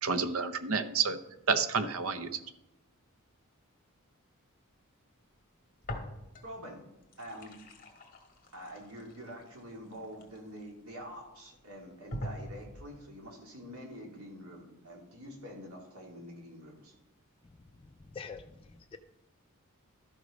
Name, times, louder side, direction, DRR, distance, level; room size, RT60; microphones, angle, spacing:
voice 1, 0.0-1.2 1.5-2.4, right 5 dB, 70° right, 11 dB, 0.8 m, -29 dB
sound 1, 5.8-6.6 6.9-10.9 11.5-11.6 12.1-13.0, left 1 dB, 40° left, 1.9 m, -43 dB
voice 2, 6.4-6.8 7.2-7.6 8.5-16.9, equal, 85° right, 0 dB, 2.8 m, -46 dB
voice 3, 17.8-19.0, left 5 dB, 25° left, 5 dB, 0.4 m, -46 dB
12.0 x 6.4 x 5.2 m, 0.96 s
head